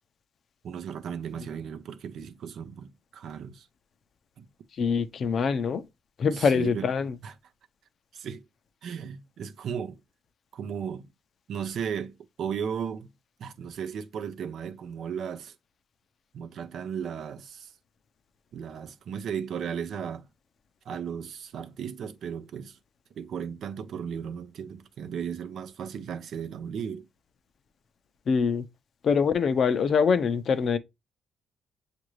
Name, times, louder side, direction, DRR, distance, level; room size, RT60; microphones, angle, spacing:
voice 1, 0.6-3.7 4.4-4.5 6.3-6.9 7.2-7.3 8.1-8.4 8.8-10.0 10.5-11.1 11.5-13.1 13.4-15.5 16.3-17.7 18.5-20.3 20.9-22.8 23.1-27.1, right 7 dB, 65° right, 0.5 m, -35 dB
voice 2, 4.8-5.8 6.2-7.2 28.3-28.7 29.0-30.8, left 6 dB, 55° left, 0.5 m, -24 dB
6.5 x 2.5 x 3.1 m
cardioid pair, 90°, 0 cm